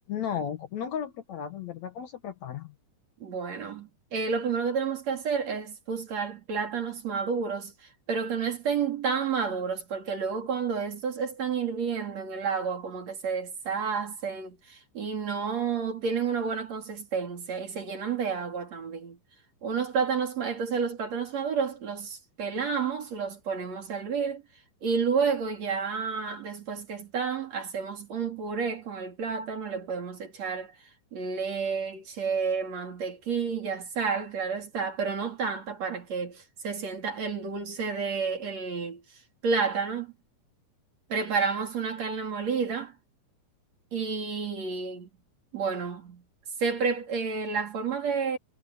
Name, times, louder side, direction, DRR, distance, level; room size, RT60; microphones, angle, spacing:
voice 1, 0.1-2.7, left 8 dB, 60° left, 2.2 m, -34 dB
voice 2, 3.2-19.2 19.6-24.4 24.8-30.7 31.1-39.0 39.4-40.1 41.1-43.0 43.9-45.1 45.5-46.2 46.6-48.4, right 5 dB, 50° right, 4.3 m, -30 dB
omnidirectional pair, 4.1 m